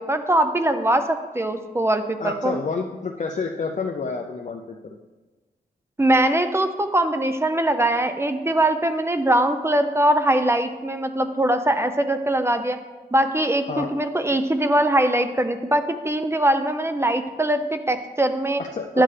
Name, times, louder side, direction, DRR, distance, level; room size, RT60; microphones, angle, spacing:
voice 1, 0.0-2.6 6.0-12.8 13.1-18.6 18.9-19.0, right 1 dB, 15° right, 8 dB, 0.6 m, -21 dB
voice 2, 2.2-5.0 13.7-14.0 18.6-19.0, left 4 dB, 45° left, 2 dB, 0.5 m, -29 dB
11.0 x 7.5 x 3.3 m, 1.3 s
wide cardioid pair, 115°, 17 cm